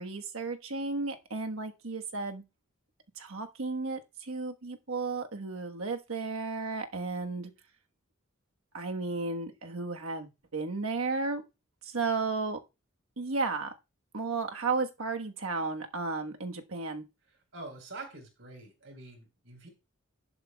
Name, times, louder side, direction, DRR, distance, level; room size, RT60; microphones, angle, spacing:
voice 1, 0.0-2.4 3.2-7.5 8.7-11.4 11.8-12.6 13.2-13.7 14.1-17.0, right 3 dB, 85° right, 1.3 m, -33 dB
voice 2, 17.5-19.7, right 3 dB, 65° right, 4.3 m, -45 dB
11.0 x 11.0 x 2.3 m
head